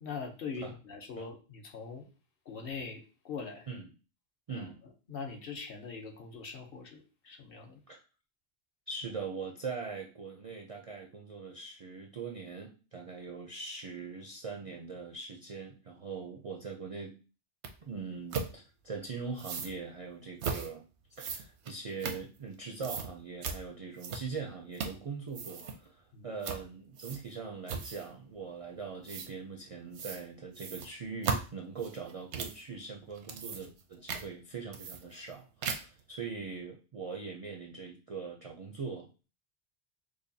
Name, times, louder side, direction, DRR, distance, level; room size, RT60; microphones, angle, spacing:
voice 1, 0.0-2.1 2.5-3.7 4.5-4.7 5.1-7.8 26.1-26.3, left 5 dB, 60° left, 3 dB, 0.9 m, -42 dB
voice 2, 8.9-17.2 17.9-20.8 21.2-39.3, right 5 dB, 55° right, 1 dB, 0.4 m, -41 dB
sound 1, 17.6-17.7 18.3-18.5 19.4-19.7 20.4-20.7 21.2-22.5 22.8-23.1 23.4-23.6 24.0-24.4 24.7-25.0 25.3-25.8 26.4-26.6 27.0-27.3 27.7-28.1 29.1-29.3 29.9-30.2 30.5-32.6 33.1-33.8 34.1-34.2 34.7-35.3 35.6-36.0, right 5 dB, 85° right, 0.9 m, -37 dB
4.7 x 2.3 x 2.6 m, 0.34 s
omnidirectional pair, 1.1 m